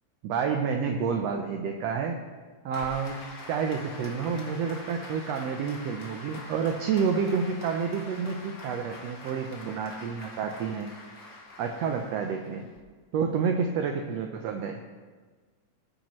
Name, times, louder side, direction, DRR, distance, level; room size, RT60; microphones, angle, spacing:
voice 1, 0.2-2.2 2.6-3.2 3.5-10.9 11.6-12.6 13.1-14.8, right 6 dB, 80° right, 3 dB, 1.5 m, -29 dB
Applause, 2.7-12.8, left 2 dB, 40° left, 1.8 m, -45 dB
19.5 x 8.9 x 3.1 m, 1.4 s
omnidirectional pair, 3.7 m